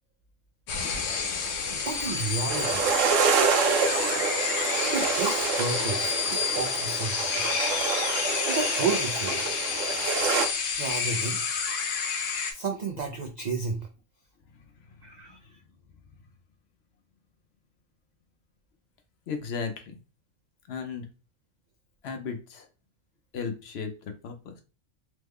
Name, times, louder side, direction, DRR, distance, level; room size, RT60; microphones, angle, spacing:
sound 1, 0.7-12.5, left 5 dB, 85° left, 1.0 m, -29 dB
voice 1, 1.7-2.9 4.8-7.4 8.5-9.4 10.8-11.4 12.5-13.8 15.0-15.4, right 4 dB, 70° right, 3 dB, 0.4 m, -32 dB
sound 2, 2.5-10.5, right 5 dB, 85° right, 1.0 m, -27 dB
voice 2, 14.5-15.3 19.3-20.0 20.7-21.1 22.0-22.7 23.3-24.6, left 5 dB, 65° left, 6 dB, 0.8 m, -36 dB
3.0 x 2.2 x 3.4 m, 0.32 s
omnidirectional pair, 1.3 m